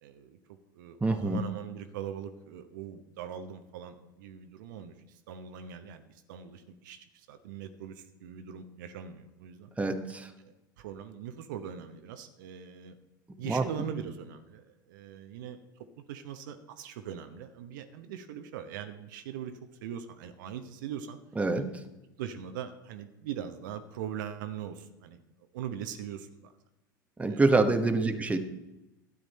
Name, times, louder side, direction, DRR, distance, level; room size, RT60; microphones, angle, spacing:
voice 1, 0.0-9.7 10.4-13.0 13.4-15.6 16.0-19.5 19.8-21.2 21.6-21.8 22.2-25.2 25.5-26.5 27.2-28.2, right 9 dB, 60° right, 8 dB, 0.9 m, -41 dB
voice 2, 1.0-1.4 9.8-10.3 13.4-13.6 21.4-21.7 27.2-28.4, right 3 dB, 10° right, 7 dB, 1.1 m, -26 dB
12.5 x 9.7 x 4.2 m, 0.97 s
figure-of-eight pair, 75°, 11 cm